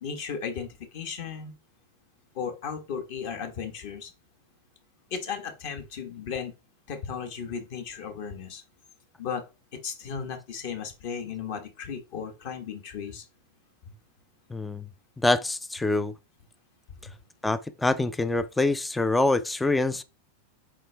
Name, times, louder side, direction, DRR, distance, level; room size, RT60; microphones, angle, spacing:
voice 1, 0.0-1.5 2.3-4.1 5.1-6.5 6.9-8.6 9.2-9.4 9.7-13.2 13.8-13.9 17.0-17.2, left 6 dB, 45° left, 1.2 m, -35 dB
voice 2, 14.5-14.9 15.2-16.1 17.4-20.0, left 2 dB, 5° left, 0.3 m, -25 dB
7.4 x 4.4 x 3.3 m
supercardioid pair, 170°, 0 cm